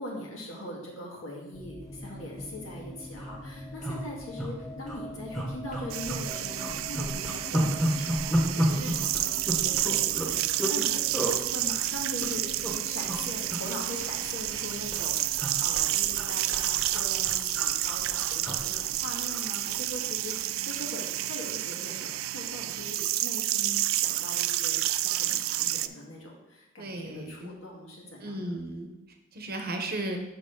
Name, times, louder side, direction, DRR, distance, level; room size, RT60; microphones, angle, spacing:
voice 1, 0.0-10.3 10.7-12.5 12.8-28.5, left 1 dB, 75° left, -3 dB, 2.0 m, -41 dB
sound 1, 1.5-21.4, left 1 dB, 30° left, 1.6 m, -46 dB
sound 2, 2.3-2.5 2.8-2.9 3.1-3.3 3.8-4.5 4.8-5.0 5.3-6.3 6.6-10.8 11.1-11.4 12.0-12.7 13.0-13.2 13.5-14.6 14.9-19.5 19.8-20.0, equal, ahead, 1.3 m, -31 dB
Toilet in the bathroom sequence, 5.9-25.9, right 14 dB, 80° right, 0.3 m, -30 dB
voice 2, 26.8-27.5 28.2-28.9 29.3-30.2, right 1 dB, 50° right, 4 dB, 0.9 m, -35 dB
6.4 x 6.2 x 3.8 m, 0.95 s
head